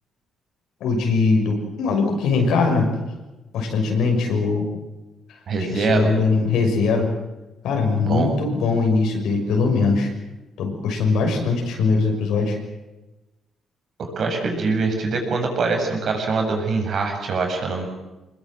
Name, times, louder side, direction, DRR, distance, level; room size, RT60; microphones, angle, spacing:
voice 1, 0.8-2.9 3.5-4.7 5.7-7.1 7.6-10.1 10.6-12.6, left 4 dB, 85° left, 2 dB, 6.2 m, -21 dB
voice 2, 5.5-6.1 8.0-8.3 14.0-17.9, right 4 dB, 60° right, 3 dB, 7.1 m, -23 dB
24.0 x 21.0 x 7.7 m, 1.1 s
cardioid pair, 90°, 0 cm